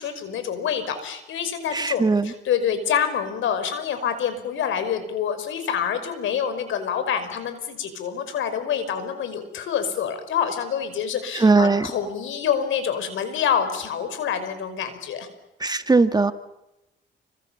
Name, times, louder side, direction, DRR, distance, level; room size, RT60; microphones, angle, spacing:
voice 1, 0.0-15.3, left 8 dB, 80° left, 10 dB, 5.4 m, -27 dB
voice 2, 1.7-2.3 11.3-11.9 15.6-16.3, right 3 dB, 20° right, 9 dB, 1.6 m, -19 dB
30.0 x 25.5 x 7.2 m, 0.91 s
cardioid pair, 90°, 20 cm